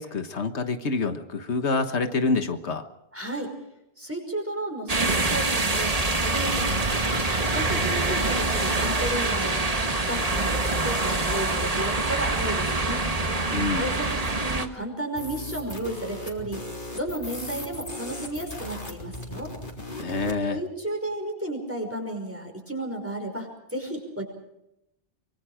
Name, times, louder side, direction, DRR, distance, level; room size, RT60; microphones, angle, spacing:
voice 1, 0.0-2.8 13.5-13.9 20.0-20.6, left 3 dB, 90° left, 8 dB, 1.7 m, -27 dB
voice 2, 3.1-3.5 4.0-9.8 10.1-13.0 13.7-16.6 16.9-19.5 20.5-24.3, right 1 dB, 10° right, 3 dB, 5.6 m, -33 dB
sound 1, 4.9-14.7, right 2 dB, 35° right, 1.6 m, -25 dB
sound 2, 15.1-20.4, left 1 dB, 50° left, 3.9 m, -37 dB
24.5 x 24.0 x 5.0 m, 0.83 s
omnidirectional pair, 1.1 m